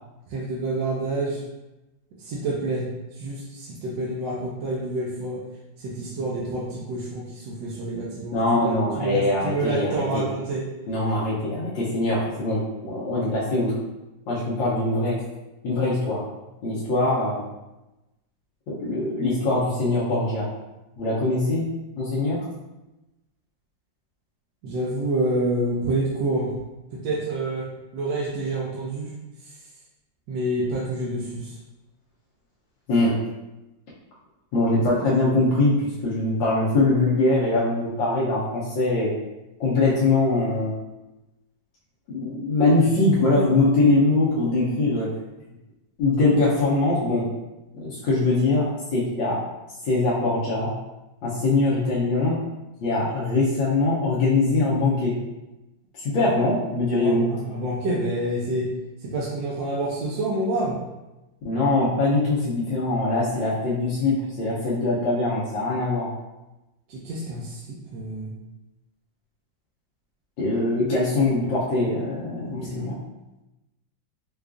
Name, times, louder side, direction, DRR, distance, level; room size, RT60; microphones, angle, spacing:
voice 1, 0.3-1.4 2.3-2.9 3.2-5.4 5.8-9.2 9.4-10.6 24.6-26.5 27.0-27.7 27.9-29.1 30.3-31.4 56.1-56.3 56.9-58.7 59.0-60.7 66.9-68.3 72.4-72.8, right 2 dB, 75° right, -5 dB, 1.3 m, -28 dB
voice 2, 8.3-10.2 10.9-13.8 14.3-15.2 15.6-16.2 16.6-17.4 18.7-20.5 21.0-21.7 22.0-22.4 32.9-33.2 34.5-39.1 39.6-40.7 42.1-45.1 46.0-47.3 47.8-49.4 49.8-50.7 51.2-52.4 52.8-55.2 56.0-57.3 61.4-66.1 70.4-73.0, left 2 dB, 80° left, -8 dB, 1.5 m, -22 dB
4.7 x 2.3 x 2.4 m, 1.0 s
omnidirectional pair, 2.0 m